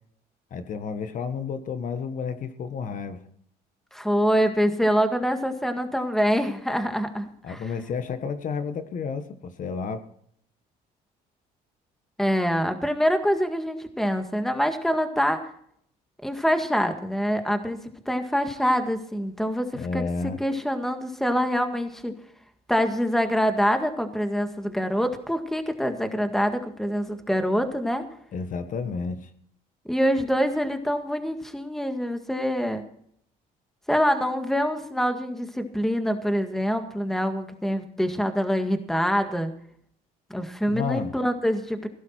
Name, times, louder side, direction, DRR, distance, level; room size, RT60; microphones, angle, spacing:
voice 1, 0.5-3.2 7.4-10.1 19.7-20.4 28.3-29.3 40.7-41.1, left 5 dB, 50° left, 10 dB, 1.4 m, -31 dB
voice 2, 3.9-7.7 12.2-15.5 16.2-22.2 22.7-28.1 29.9-32.8 33.9-39.5 40.3-41.9, equal, ahead, 7 dB, 1.9 m, -25 dB
16.5 x 11.5 x 4.5 m, 0.64 s
cardioid pair, 110°, 17 cm